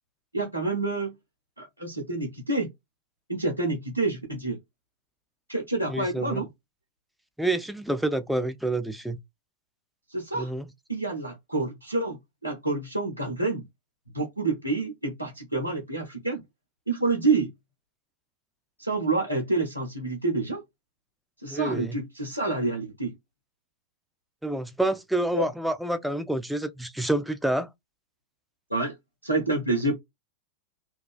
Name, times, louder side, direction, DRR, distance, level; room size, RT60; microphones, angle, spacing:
voice 1, 0.3-1.1 1.6-2.7 3.3-4.6 5.5-6.5 10.1-10.5 10.9-13.6 14.1-16.4 16.9-17.5 18.8-20.6 21.4-23.2 25.3-25.5 28.7-29.0 29.2-29.9, right 3 dB, 90° left, 0.7 m, -28 dB
voice 2, 5.9-6.4 7.4-9.2 10.4-10.6 21.5-22.0 24.4-27.7, right 1 dB, ahead, 0.3 m, -28 dB
2.4 x 2.2 x 2.3 m
figure-of-eight pair, 90°, 0 cm